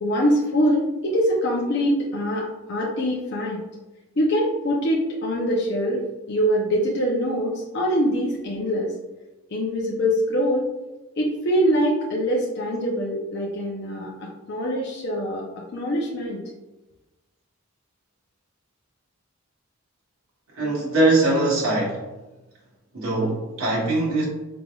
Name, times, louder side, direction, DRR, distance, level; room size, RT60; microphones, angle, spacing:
voice 1, 0.0-3.6 4.2-8.9 9.5-10.7 11.2-16.4, equal, 50° left, -3 dB, 0.6 m, -24 dB
voice 2, 20.6-22.0 22.9-24.3, right 2 dB, 75° right, -4 dB, 1.2 m, -21 dB
5.0 x 3.2 x 2.3 m, 1.1 s
head